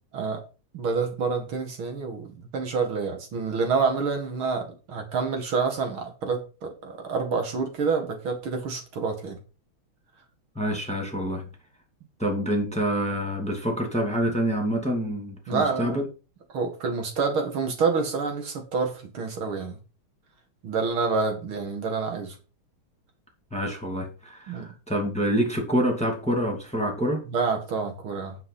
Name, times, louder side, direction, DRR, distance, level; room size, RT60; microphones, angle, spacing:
voice 1, 0.7-9.4 15.5-16.0 16.5-19.8 20.6-22.4 24.5-24.7 27.3-28.4, right 4 dB, 70° right, 2.8 m, -28 dB
voice 2, 10.6-11.4 12.2-16.0 23.5-27.2, equal, 5° left, 2.2 m, -27 dB
9.4 x 6.0 x 5.5 m
omnidirectional pair, 2.4 m